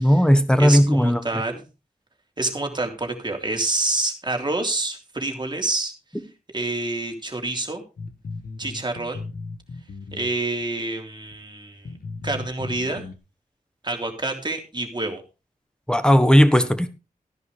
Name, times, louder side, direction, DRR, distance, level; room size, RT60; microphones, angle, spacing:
voice 1, 0.0-1.2 15.9-16.9, equal, 5° left, 1.3 m, -16 dB
voice 2, 0.6-1.6 2.4-5.9 6.5-7.8 8.6-9.2 10.1-11.9 12.2-13.0 13.8-15.2, right 2 dB, 30° right, 3.2 m, -27 dB
sound 1, 8.0-10.6 11.3-11.4 11.8-13.2, left 3 dB, 80° left, 1.4 m, -36 dB
14.0 x 10.5 x 3.4 m
wide cardioid pair, 70°, 15 cm